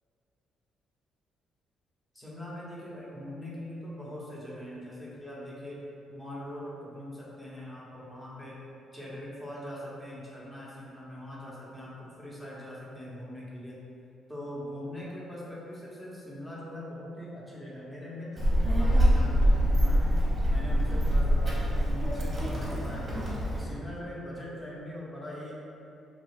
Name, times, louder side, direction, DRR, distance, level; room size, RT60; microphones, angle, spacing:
voice 1, 2.1-5.8 6.1-8.6 8.9-13.8 14.3-20.1 20.4-23.1 23.5-25.6, left 1 dB, 15° left, -6 dB, 0.8 m, -42 dB
Child speech kid speaking, 18.4-23.6, equal, 25° right, 0.7 m, -25 dB
3.0 x 2.3 x 3.2 m, 2.7 s
cardioid pair, 90°, 0 cm